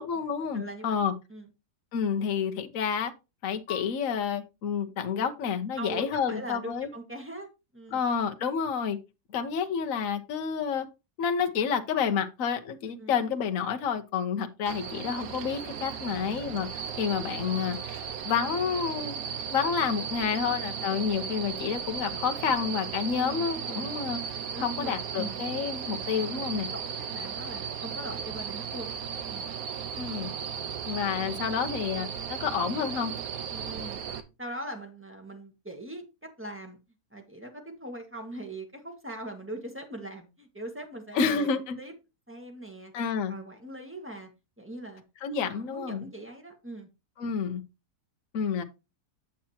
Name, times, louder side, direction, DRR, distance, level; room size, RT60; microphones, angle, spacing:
voice 1, 0.0-1.1 1.9-3.1 3.4-6.9 7.9-9.0 9.3-10.9 11.2-16.7 17.0-18.0 18.2-24.2 24.6-26.7 29.9-30.3 30.9-33.1 41.1-41.8 42.9-43.4 45.2-46.0 47.2-47.6 48.3-48.6, left 6 dB, 60° left, 1.3 m, -29 dB
voice 2, 0.5-1.0 1.3-1.5 5.2-5.3 5.8-8.0 13.0-13.1 23.1-23.9 24.5-25.4 26.7-28.9 29.3-29.5 33.5-34.0 34.4-36.8 37.1-41.5 41.8-41.9 42.3-42.9 43.3-44.3 44.6-45.0 45.3-46.9, right 1 dB, 10° right, 1.6 m, -41 dB
sound 1, 14.7-34.2, right 7 dB, 65° right, 1.3 m, -36 dB
8.5 x 7.5 x 2.9 m
omnidirectional pair, 1.7 m